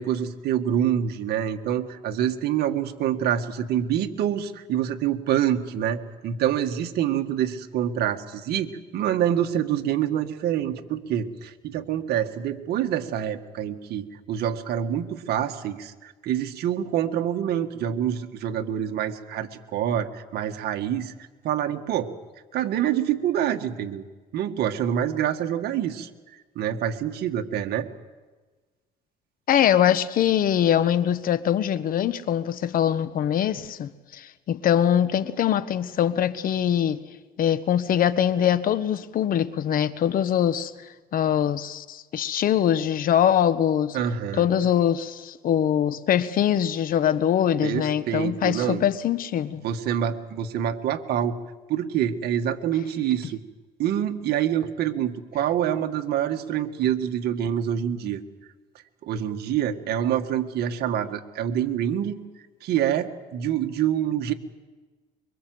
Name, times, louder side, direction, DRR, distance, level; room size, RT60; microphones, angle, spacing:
voice 1, 0.0-21.1 21.4-22.1 22.5-24.0 24.3-27.9 43.9-44.7 47.6-48.8 49.6-51.3 51.7-53.4 53.8-58.2 59.0-62.2 62.6-64.3, right 10 dB, 70° right, 1.8 m, -26 dB
voice 2, 29.5-37.0 37.4-40.7 41.1-44.0 44.4-49.6, left 10 dB, 60° left, 1.2 m, -23 dB
24.5 x 23.5 x 7.9 m
cardioid pair, 110°, 17 cm